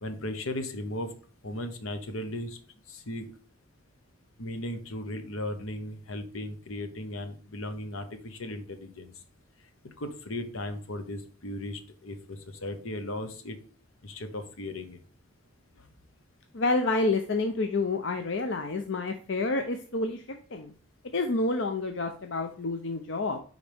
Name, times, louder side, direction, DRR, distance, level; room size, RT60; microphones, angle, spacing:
voice 1, 0.0-1.1 1.4-2.6 2.9-3.2 4.4-9.1 10.0-13.6 14.0-15.0, left 1 dB, 80° left, 8 dB, 1.0 m, -36 dB
voice 2, 16.5-20.2 20.5-20.7 21.1-23.4, left 3 dB, 60° left, 6 dB, 0.6 m, -28 dB
9.9 x 4.0 x 3.5 m, 0.42 s
head